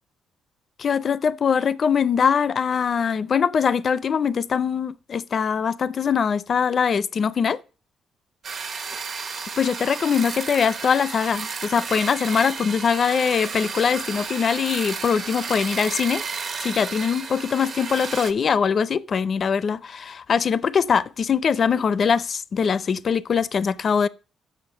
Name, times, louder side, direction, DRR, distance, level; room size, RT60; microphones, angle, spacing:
voice 1, 0.8-7.6 9.6-16.2 16.6-24.1, left 6 dB, 50° left, 0.4 m, -22 dB
sound 1, 8.4-18.3, right 5 dB, 55° right, 1.1 m, -32 dB
7.1 x 6.1 x 6.6 m
cardioid pair, 90°, 0 cm